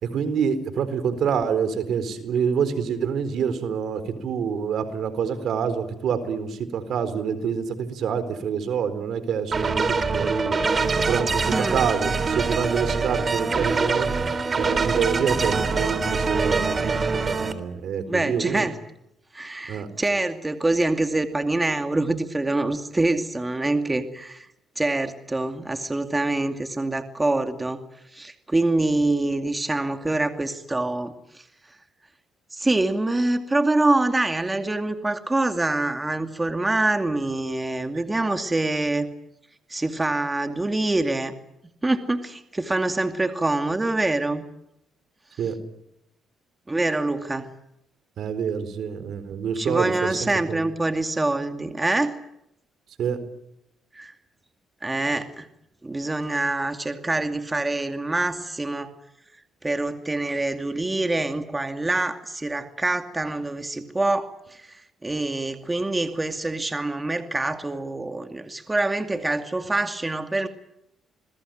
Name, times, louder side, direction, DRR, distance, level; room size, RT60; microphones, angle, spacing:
voice 1, 0.0-10.6 11.0-14.1 14.6-18.6 19.7-19.9 45.4-45.6 48.2-50.6 53.0-53.2, right 7 dB, 70° right, 12 dB, 4.2 m, -27 dB
sound 1, 9.5-17.5, right 4 dB, 35° right, 3.5 m, -24 dB
voice 2, 11.5-11.9 18.1-18.8 19.3-24.5 24.8-27.8 28.1-31.4 32.5-39.1 39.7-41.3 41.8-44.5 46.7-47.5 49.6-52.2 53.9-54.1 54.8-55.5 55.8-58.9 59.6-70.5, right 2 dB, 15° right, 7 dB, 2.4 m, -25 dB
27.5 x 21.5 x 9.1 m, 0.82 s
cardioid pair, 85°, 0 cm